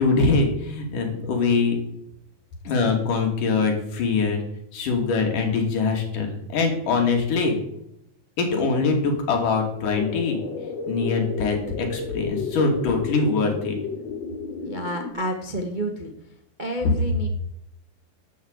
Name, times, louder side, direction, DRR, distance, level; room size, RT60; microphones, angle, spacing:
voice 1, 0.0-1.8 2.7-4.4 4.7-7.5 8.4-10.4 10.9-13.8, left 4 dB, 70° left, 2 dB, 4.1 m, -23 dB
sound 1, 9.8-15.1, left 5 dB, 55° left, 1.3 m, -32 dB
voice 2, 14.6-16.1 16.6-17.3, right 1 dB, 75° right, 3 dB, 0.4 m, -30 dB
12.5 x 7.6 x 8.1 m, 0.78 s
omnidirectional pair, 3.9 m